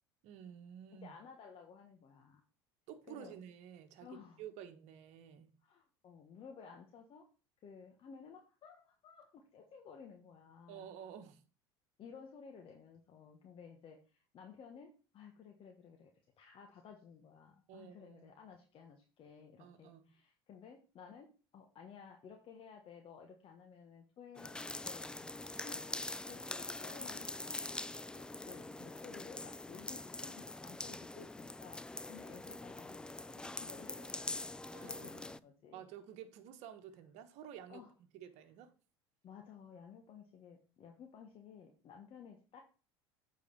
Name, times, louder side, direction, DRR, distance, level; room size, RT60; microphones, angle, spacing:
voice 1, 0.2-1.1 2.9-5.5 10.7-11.4 17.7-18.3 19.6-20.1 34.7-35.3 35.7-37.8 38.1-38.7, right 9 dB, 60° right, 1.2 m, -51 dB
voice 2, 1.0-2.4 3.1-3.3 4.0-4.4 5.6-7.3 7.6-10.9 12.0-16.1 16.4-27.3 28.1-34.4 34.8-35.9 37.7-37.9 39.2-42.6, left 6 dB, 45° left, 1.3 m, -55 dB
sound 1, 24.3-35.4, left 2 dB, 5° left, 0.3 m, -44 dB
8.3 x 4.0 x 5.3 m
hypercardioid pair, 75°, 13 cm